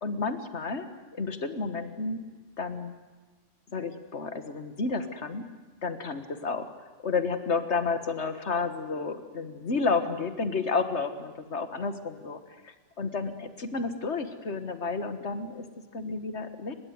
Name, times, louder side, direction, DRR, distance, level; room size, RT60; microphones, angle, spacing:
voice 1, 0.0-0.9 1.1-2.2 2.6-2.9 3.7-5.4 5.8-6.7 7.0-15.7 15.9-16.7, left 4 dB, 65° left, 10 dB, 1.8 m, -31 dB
30.0 x 16.0 x 9.5 m, 1.4 s
omnidirectional pair, 1.2 m